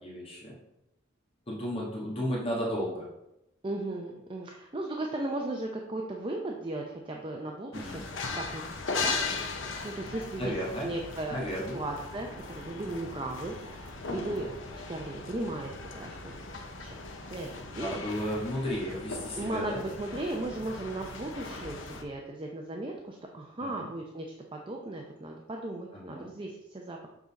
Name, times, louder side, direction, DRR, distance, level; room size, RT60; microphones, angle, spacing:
voice 1, 0.0-0.6 1.5-3.1 7.7-8.0 10.4-10.9 11.3-11.8 14.1-14.5 17.8-19.8 23.6-23.9 25.9-26.3, equal, 30° left, -5 dB, 1.5 m, -34 dB
voice 2, 3.6-8.0 8.4-9.2 9.8-10.5 10.8-11.4 11.7-16.4 16.8-17.0 17.3-18.0 19.4-24.3 24.5-27.1, right 2 dB, 25° right, 0 dB, 0.6 m, -36 dB
sound 1, 7.7-22.0, left 4 dB, 85° left, 0.8 m, -38 dB
7.3 x 3.9 x 4.0 m, 0.85 s
head